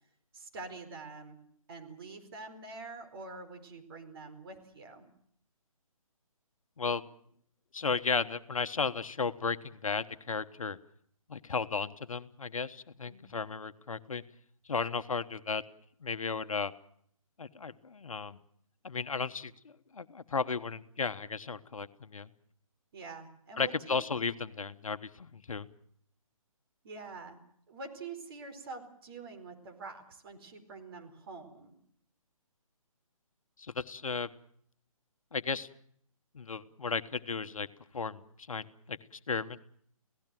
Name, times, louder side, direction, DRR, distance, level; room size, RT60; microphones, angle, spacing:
voice 1, 0.3-1.4 1.7-5.1 13.0-13.3 22.9-24.0 26.8-27.4 27.7-31.7, right 3 dB, 40° right, 5 dB, 4.5 m, -46 dB
voice 2, 7.7-10.8 11.3-14.2 14.7-15.6 16.0-16.7 17.4-18.4 18.8-22.3 23.6-25.7 33.6-34.3 35.3-35.7 36.3-37.7 37.9-39.0 39.3-39.6, left 5 dB, 65° left, 11 dB, 1.2 m, -34 dB
28.5 x 17.5 x 7.7 m, 0.65 s
figure-of-eight pair, 145°, 18 cm